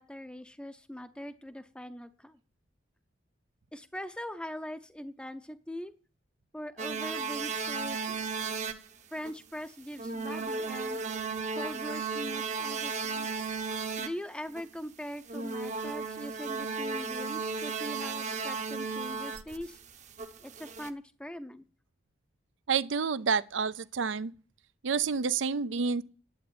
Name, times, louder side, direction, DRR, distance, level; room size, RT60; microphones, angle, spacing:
voice 1, 0.0-2.4 3.7-5.9 6.5-8.3 9.1-11.0 11.6-13.3 14.0-19.8 20.4-21.6, equal, 5° left, 0.6 m, -41 dB
sound 1, 6.8-8.9 9.2-9.3 10.0-14.1 14.5-14.7 15.3-20.9, right 4 dB, 35° right, 0.8 m, -35 dB
voice 2, 22.7-24.3 24.8-26.0, right 5 dB, 75° right, 0.5 m, -29 dB
11.0 x 8.4 x 8.6 m
head